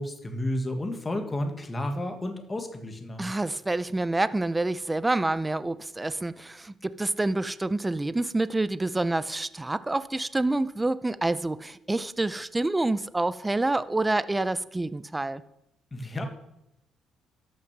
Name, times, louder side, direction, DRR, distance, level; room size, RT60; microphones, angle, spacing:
voice 1, 0.0-3.2 15.9-16.3, left 1 dB, 20° left, 5 dB, 1.5 m, -31 dB
voice 2, 3.2-15.4, right 2 dB, 15° right, 15 dB, 0.5 m, -27 dB
13.0 x 6.1 x 6.1 m, 0.87 s
cardioid pair, 110°, 0 cm